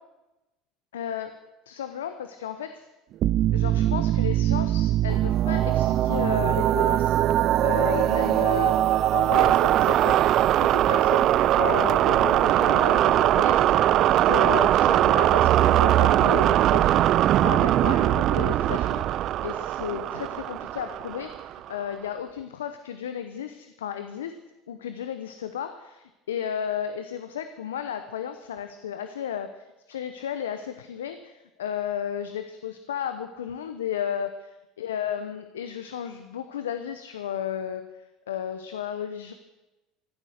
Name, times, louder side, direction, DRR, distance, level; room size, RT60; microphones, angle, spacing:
voice 1, 0.9-1.3 1.7-2.9 3.5-7.2 7.6-8.9 9.1-10.2 10.6-17.0 17.4-24.4 24.7-34.3 34.8-37.8 38.3-39.3, left 9 dB, 85° left, 9 dB, 0.8 m, -33 dB
sound 1, 3.2-21.7, right 13 dB, 55° right, 0.4 m, -21 dB
15.0 x 13.0 x 6.5 m, 1.0 s
hypercardioid pair, 75°, 0 cm